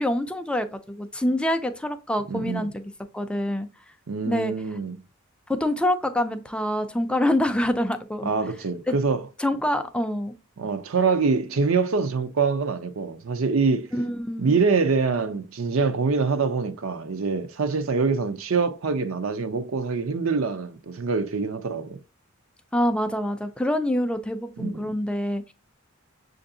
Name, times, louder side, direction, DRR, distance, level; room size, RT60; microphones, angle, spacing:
voice 1, 0.0-2.8 3.1-3.7 4.3-4.5 5.5-8.3 8.9-9.0 9.4-10.3 13.9-14.5 22.7-25.5, left 1 dB, 5° left, 0.3 m, -26 dB
voice 2, 2.3-2.7 4.1-5.0 8.2-9.2 10.6-13.9 14.4-22.0 24.6-24.9, right 4 dB, 70° right, 0.6 m, -25 dB
6.6 x 2.6 x 2.6 m
head